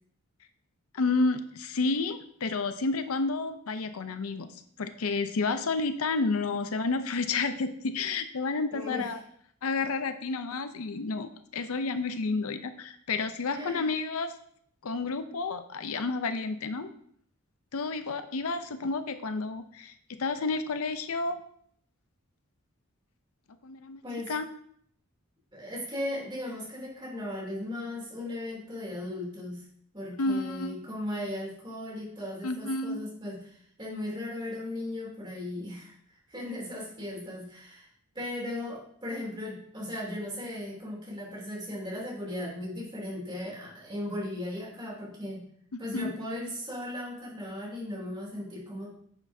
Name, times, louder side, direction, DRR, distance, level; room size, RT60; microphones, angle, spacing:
voice 1, 0.9-9.2 9.6-14.3 14.8-16.9 17.7-21.4 23.6-24.5 30.2-30.8 32.4-33.0 45.7-46.1, left 3 dB, 80° left, 10 dB, 0.6 m, -30 dB
voice 2, 8.7-9.1 13.5-13.9 24.0-24.3 25.5-29.6 29.9-37.9 38.1-45.4 45.8-49.0, left 1 dB, 20° right, -4 dB, 2.9 m, -37 dB
9.7 x 7.3 x 2.7 m, 0.65 s
head